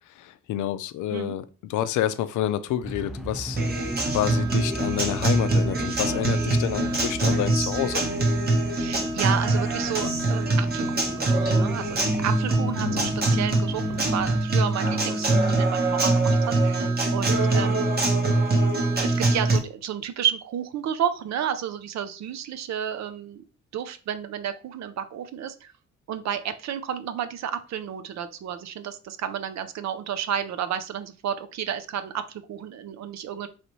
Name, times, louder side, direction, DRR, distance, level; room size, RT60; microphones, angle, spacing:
voice 1, 0.2-1.4 1.7-3.6 4.1-8.0 12.8-13.1, left 12 dB, 75° left, 0.5 m, -28 dB
sound 1, 2.8-14.4, right 1 dB, ahead, 0.3 m, -38 dB
Acoustic guitar, 3.6-19.6, right 2 dB, 30° right, 1.1 m, -23 dB
voice 2, 8.7-17.9 19.0-23.4 23.7-25.7 26.1-33.5, right 9 dB, 65° right, 0.6 m, -31 dB
4.0 x 3.2 x 3.0 m
cardioid pair, 90°, 30 cm